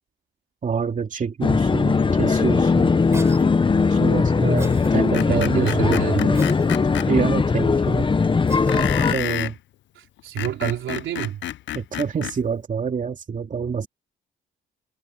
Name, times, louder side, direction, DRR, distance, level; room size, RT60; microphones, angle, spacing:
voice 1, 0.6-2.9 3.9-6.4 7.1-8.1 8.7-9.6 11.7-13.9, right 6 dB, 40° right, 2.4 m, -27 dB
sound 1, 1.4-9.1, left 4 dB, 25° left, 0.9 m, -19 dB
Cough, 3.1-3.5 4.6-4.9 6.3-6.7 8.5-8.8, right 2 dB, 15° right, 7.8 m, -38 dB
Screech, 5.1-7.1 8.7-9.6 10.2-12.4, left 13 dB, 70° left, 0.6 m, -30 dB
voice 2, 5.3-6.3 10.0-11.4, right 11 dB, 75° right, 4.2 m, -28 dB
cardioid pair, 90°, 20 cm